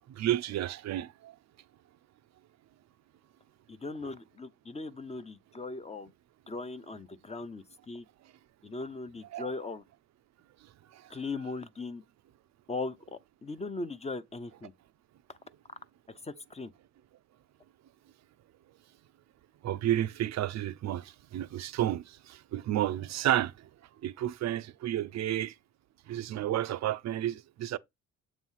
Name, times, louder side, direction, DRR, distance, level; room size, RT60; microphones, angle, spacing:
voice 1, 0.2-1.3 9.3-9.5 19.6-23.5 24.0-25.5 26.1-27.8, right 12 dB, 65° right, 0.5 m, -31 dB
voice 2, 3.7-6.1 6.5-8.0 8.6-9.8 11.1-12.0 12.7-14.7 16.2-16.7, left 3 dB, 20° left, 0.7 m, -39 dB
7.3 x 3.0 x 5.6 m
cardioid pair, 90°, 30 cm